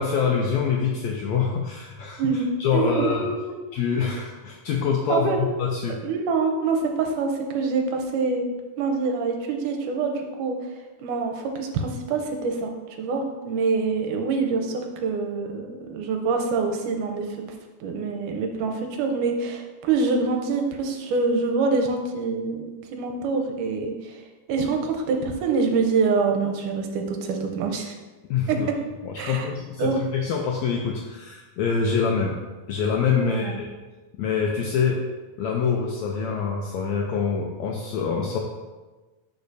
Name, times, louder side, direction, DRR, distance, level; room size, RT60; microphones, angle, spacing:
voice 1, 0.0-3.3 3.7-5.3 5.6-6.0 6.4-6.5 28.3-28.7 29.0-32.3 32.7-33.7 34.2-35.0 35.4-38.4, left 6 dB, 80° left, 0 dB, 1.6 m, -25 dB
voice 2, 2.2-3.4 5.1-5.4 6.0-8.5 8.8-10.6 11.0-17.5 17.8-24.2 24.5-27.9 28.5-28.8 29.2-29.5 29.8-30.0 33.2-33.5, right 4 dB, 80° right, 3 dB, 2.2 m, -25 dB
10.5 x 4.9 x 2.7 m, 1.2 s
omnidirectional pair, 3.8 m